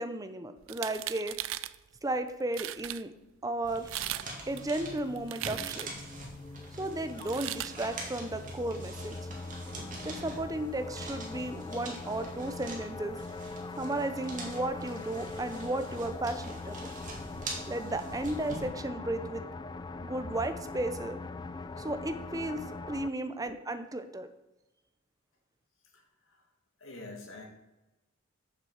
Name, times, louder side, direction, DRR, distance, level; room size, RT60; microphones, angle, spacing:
voice 1, 0.0-1.4 2.0-3.1 3.4-3.9 4.5-5.9 6.7-9.2 10.0-13.2 13.8-16.9 17.7-19.4 20.0-21.2 21.8-24.3, right 2 dB, 15° right, 9 dB, 0.6 m, -34 dB
sound 1, 0.6-1.8 2.3-2.4 2.5-3.0 3.8-4.3 4.6-6.1 7.2-7.7, right 14 dB, 65° right, 0.4 m, -37 dB
Opening folded papers, 3.6-18.7, right 2 dB, 40° right, 2.2 m, -45 dB
sound 2, 4.1-23.1, left 3 dB, 20° left, 0.3 m, -42 dB
voice 2, 23.2-23.6 25.9-26.4 26.8-27.5, left 2 dB, 70° left, 0 dB, 2.3 m, -47 dB
7.1 x 6.9 x 7.1 m, 1.0 s
head